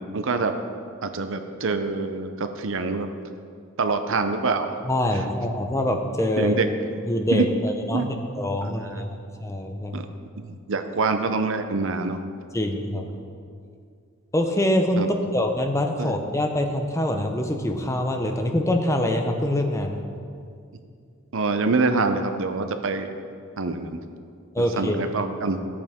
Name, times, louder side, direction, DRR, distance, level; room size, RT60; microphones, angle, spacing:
voice 1, 0.1-0.5 1.0-3.1 3.8-4.8 6.4-6.7 7.3-7.4 7.9-8.1 8.6-9.0 9.9-10.1 10.7-12.2 15.0-15.1 16.0-16.1 21.3-23.1 23.6-24.0 24.6-25.6, right 3 dB, 65° right, 7 dB, 0.7 m, -25 dB
voice 2, 4.8-6.6 7.0-10.0 12.5-13.1 14.3-15.0 15.3-20.0 24.5-25.0, left 1 dB, 15° left, 3 dB, 0.7 m, -25 dB
14.0 x 8.6 x 3.6 m, 2.3 s
head